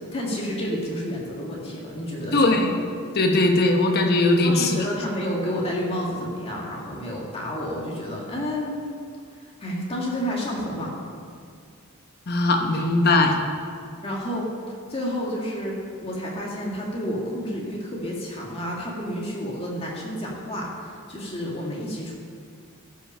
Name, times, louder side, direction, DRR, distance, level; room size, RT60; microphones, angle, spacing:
voice 1, 0.1-2.6 4.4-8.8 9.4-11.0 14.0-14.5 14.9-22.1, equal, 25° left, -3 dB, 1.8 m, -30 dB
voice 2, 2.3-2.8 3.1-5.0 12.3-13.3, left 2 dB, 45° left, 3 dB, 0.9 m, -20 dB
14.0 x 5.6 x 5.5 m, 2.2 s
head